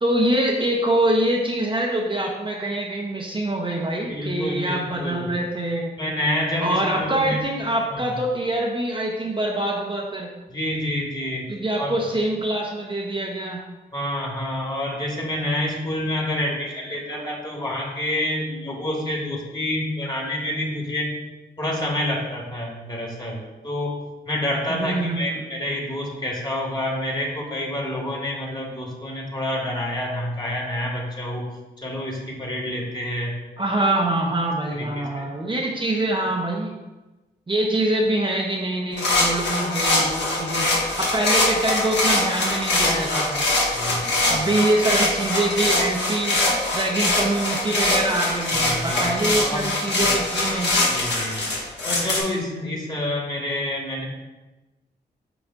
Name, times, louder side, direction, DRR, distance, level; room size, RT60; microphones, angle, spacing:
voice 1, 0.0-5.9 6.6-10.3 11.5-13.6 24.7-25.4 33.6-36.7 37.5-40.7 41.0-43.5 44.3-46.4 46.7-50.7, right 1 dB, 30° right, -1 dB, 0.8 m, -24 dB
voice 2, 4.1-5.2 6.0-7.4 7.9-8.1 10.5-11.5 11.8-12.0 13.9-21.1 21.6-24.0 24.3-31.5 31.8-33.3 34.8-35.3 43.7-44.4 48.5-49.7 50.0-50.1 50.9-51.4 51.8-54.0, left 1 dB, 25° left, -2 dB, 1.9 m, -28 dB
sound 1, 39.0-52.2, left 2 dB, 80° left, 1.5 m, -23 dB
8.0 x 5.0 x 2.5 m, 1.1 s
cardioid pair, 75°, 18 cm